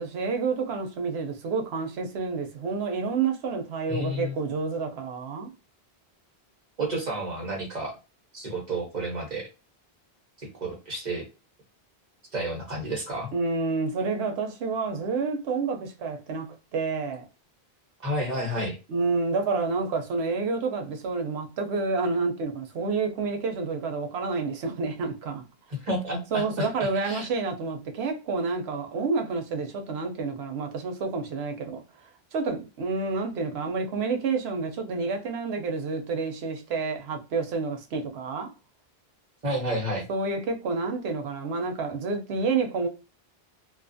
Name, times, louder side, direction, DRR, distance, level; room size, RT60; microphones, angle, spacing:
voice 1, 0.0-5.5 13.3-17.2 18.9-25.5 26.3-31.8 32.3-38.5 40.1-42.9, right 4 dB, 90° right, 0.9 m, -29 dB
voice 2, 3.9-4.3 6.8-8.0 8.3-9.5 10.4-11.3 12.3-13.3 18.0-18.8 25.7-27.3 39.4-40.0, right 1 dB, 45° right, 1.0 m, -31 dB
2.5 x 2.4 x 2.5 m
omnidirectional pair, 1.0 m